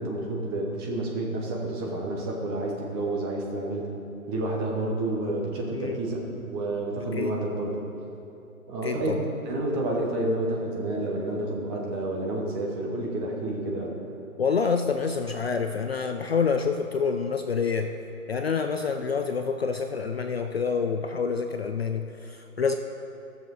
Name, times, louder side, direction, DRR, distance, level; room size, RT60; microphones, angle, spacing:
voice 1, 0.0-3.8 4.3-6.2 6.4-7.8 8.7-9.2 9.4-13.9, right 2 dB, 15° right, -2 dB, 1.0 m, -29 dB
voice 2, 8.8-9.3 14.4-18.0 18.3-22.7, left 5 dB, 45° left, 6 dB, 0.4 m, -27 dB
16.0 x 6.8 x 4.0 m, 2.7 s
hypercardioid pair, 150°, 44 cm